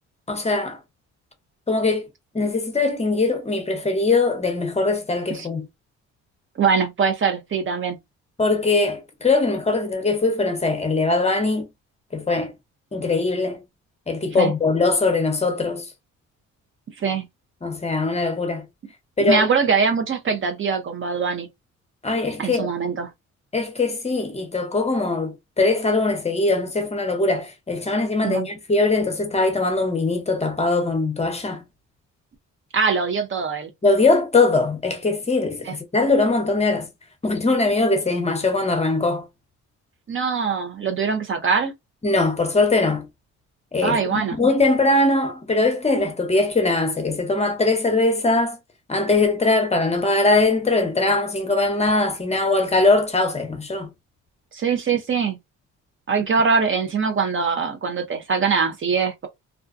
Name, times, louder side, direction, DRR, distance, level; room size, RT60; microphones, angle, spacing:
voice 1, 0.3-0.8 1.7-2.1 2.3-5.7 8.4-11.7 12.1-12.5 12.9-13.6 14.1-15.9 17.6-18.6 19.2-19.5 22.0-22.7 23.5-31.6 33.8-36.9 37.2-39.3 42.0-43.1 43.7-48.6 48.9-53.9, left 3 dB, 20° left, 0.8 m, -21 dB
voice 2, 6.6-8.0 14.4-14.5 17.0-17.3 19.2-21.5 22.4-23.1 28.2-28.5 32.7-33.7 35.7-35.8 40.1-41.7 43.8-44.4 54.5-55.4 56.1-59.3, right 5 dB, 40° right, 0.6 m, -22 dB
2.4 x 2.2 x 2.5 m
cardioid pair, 90°, 30 cm